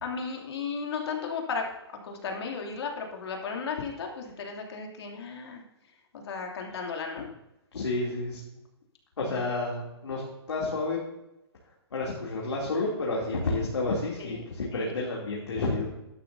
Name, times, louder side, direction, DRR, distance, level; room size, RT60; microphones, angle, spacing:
voice 1, 0.0-1.7 2.0-7.3 9.2-9.5 14.2-14.4 14.7-14.9, left 5 dB, 70° left, 1 dB, 2.7 m, -35 dB
voice 2, 7.7-8.4 9.2-10.2 10.5-11.0 11.9-15.9, left 2 dB, 90° left, -4 dB, 2.8 m, -30 dB
12.5 x 11.5 x 2.7 m, 0.90 s
hypercardioid pair, 145°, 14 cm